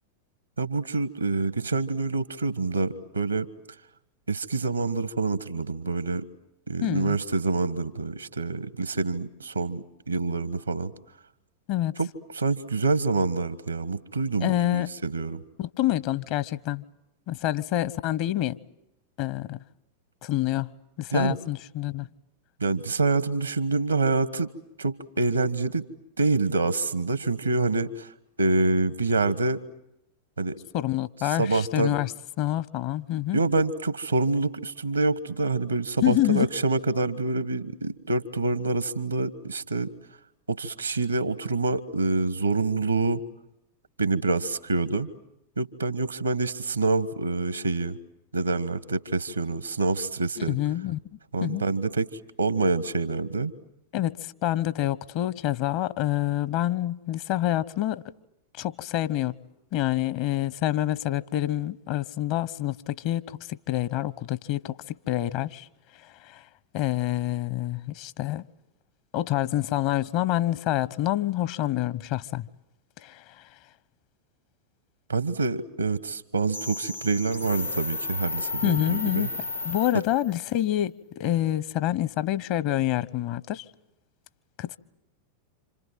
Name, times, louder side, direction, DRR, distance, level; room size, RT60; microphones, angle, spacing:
voice 1, 0.6-3.5 4.3-6.3 6.7-10.9 12.0-15.4 21.1-21.4 22.6-24.5 24.8-25.8 26.2-28.1 28.4-29.6 30.4-30.6 31.3-31.9 33.3-39.9 40.5-43.2 44.0-45.1 45.6-48.0 48.3-50.6 51.3-52.1 52.4-53.5 75.1-79.3, right 3 dB, 80° right, 1.5 m, -26 dB
voice 2, 6.8-7.2 11.7-11.9 14.4-14.9 15.6-16.8 17.3-18.6 19.2-19.6 20.2-20.7 21.0-22.1 30.7-32.1 32.4-33.4 36.0-36.5 50.4-51.0 51.4-51.6 53.9-58.0 58.6-59.3 59.7-65.7 66.2-66.4 66.7-68.4 69.1-72.5 73.0-73.4 78.6-79.3 79.6-83.6 84.6-84.8, left 14 dB, 45° left, 1.0 m, -27 dB
sound 1, 76.5-80.4, left 3 dB, 85° left, 1.1 m, -33 dB
28.5 x 27.0 x 7.6 m
figure-of-eight pair, 90°, 0 cm